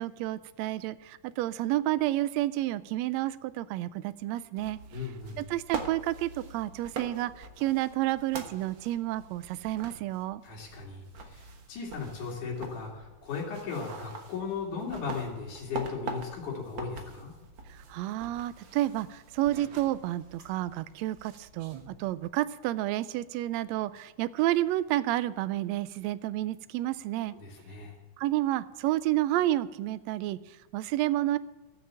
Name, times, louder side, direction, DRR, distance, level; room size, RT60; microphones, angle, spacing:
voice 1, 0.0-4.8 5.4-10.4 17.7-27.3 28.2-31.4, right 15 dB, 80° right, 15 dB, 1.6 m, -30 dB
sound 1, 4.5-22.3, right 4 dB, 50° right, 1.5 m, -44 dB
voice 2, 4.9-5.4 10.4-11.0 11.3-17.3 27.4-27.9, left 5 dB, 75° left, -3 dB, 3.9 m, -37 dB
14.5 x 6.9 x 7.5 m, 1.2 s
omnidirectional pair, 3.6 m